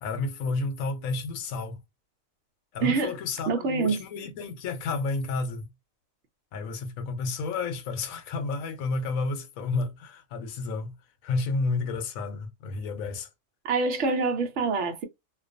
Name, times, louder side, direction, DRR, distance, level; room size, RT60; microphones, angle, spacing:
voice 1, 0.0-1.8 2.7-5.7 6.5-10.9 11.2-13.3, left 3 dB, 85° left, 1.0 m, -31 dB
voice 2, 2.8-3.1 3.5-4.0 13.6-15.0, right 4 dB, 65° right, 0.9 m, -26 dB
2.5 x 2.3 x 2.4 m
omnidirectional pair, 1.4 m